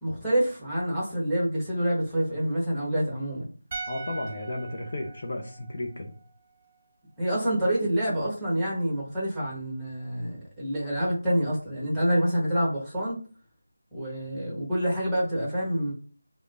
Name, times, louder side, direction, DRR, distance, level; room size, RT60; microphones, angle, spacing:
voice 1, 0.0-3.4 7.2-13.2 13.9-15.9, equal, ahead, -6 dB, 1.0 m, -27 dB
sound 1, 3.7-6.9 7.2-7.3, right 4 dB, 25° right, 0.3 m, -42 dB
voice 2, 3.9-6.1, left 1 dB, 45° left, 1 dB, 0.5 m, -33 dB
3.2 x 2.0 x 2.5 m, 0.41 s
figure-of-eight pair, 170°, 0 cm